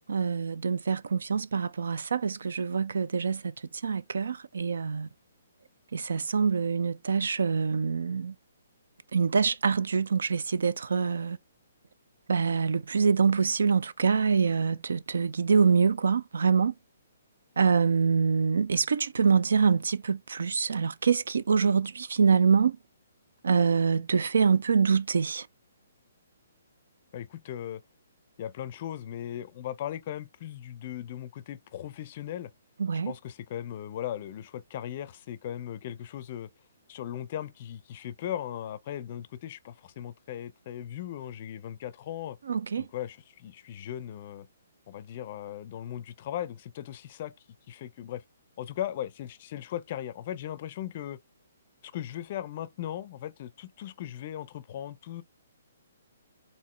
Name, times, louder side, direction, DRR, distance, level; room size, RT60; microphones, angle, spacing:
voice 1, 0.1-3.5 3.8-5.1 5.9-8.3 9.1-11.4 12.3-16.7 17.6-22.8 23.4-25.5 32.8-33.1 42.5-42.9, right 5 dB, 70° right, 0.4 m, -25 dB
voice 2, 27.1-27.8 28.4-32.5 33.1-36.5 36.9-42.4 42.8-44.5 44.9-48.2 48.6-51.2 51.8-55.2, left 11 dB, 45° left, 0.4 m, -38 dB
4.6 x 2.8 x 3.2 m
hypercardioid pair, 135°, 0 cm